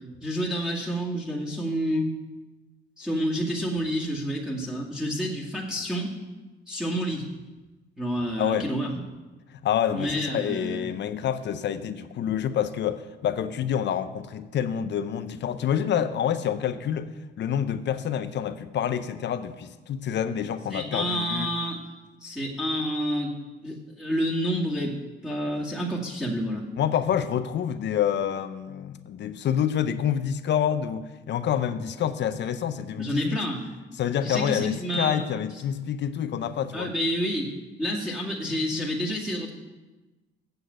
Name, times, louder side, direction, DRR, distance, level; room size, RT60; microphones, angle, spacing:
voice 1, 0.2-2.1 3.0-6.1 6.7-7.3 8.0-8.9 9.9-10.9 20.7-21.8 22.2-23.3 23.6-24.9 25.2-26.6 33.0-33.7 34.2-35.2 36.7-37.5 37.8-39.5, equal, 5° right, 2.2 m, -29 dB
voice 2, 8.4-8.7 9.5-17.1 17.4-21.5 26.8-33.4 34.0-36.9, left 9 dB, 65° left, 0.7 m, -27 dB
8.0 x 6.3 x 8.0 m
cardioid pair, 90°, 20 cm